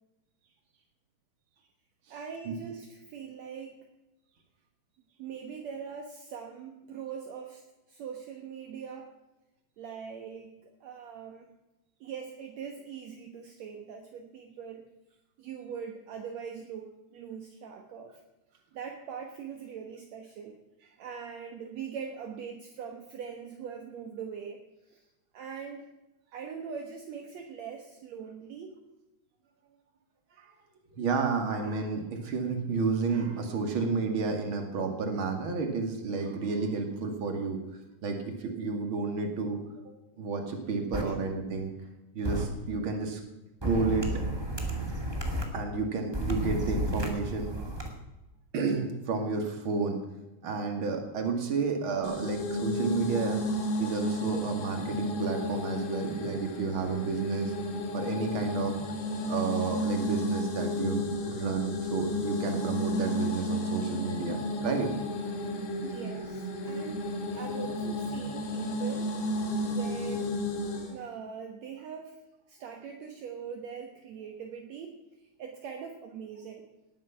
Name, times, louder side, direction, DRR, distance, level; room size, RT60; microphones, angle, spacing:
voice 1, 2.1-3.8 5.2-7.6 7.9-9.1 9.8-11.5 12.0-14.9 15.4-18.2 18.7-20.6 21.0-24.6 24.9-25.0 25.3-25.9 26.3-28.8 41.0-41.2 65.8-67.0 67.3-69.2 69.7-70.3 70.8-72.2 72.5-75.0 75.4-76.7, right 7 dB, 65° right, 3 dB, 2.4 m, -42 dB
voice 2, 30.9-37.6 38.0-39.6 40.2-41.7 42.1-43.2 43.6-44.1 45.5-47.7 48.5-50.0 50.4-53.4 53.8-57.5 57.9-58.7 59.3-64.9 65.2-65.4 69.5-69.7 70.7-70.8, right 4 dB, 45° right, 4 dB, 2.8 m, -31 dB
sound 1, 40.9-41.0 42.2-42.4 43.6-45.4 46.1-47.9, right 1 dB, 10° right, 1.6 m, -32 dB
sound 2, 52.0-70.9, left 1 dB, 75° left, 3.5 m, -32 dB
19.0 x 11.0 x 5.9 m, 1.0 s
omnidirectional pair, 3.5 m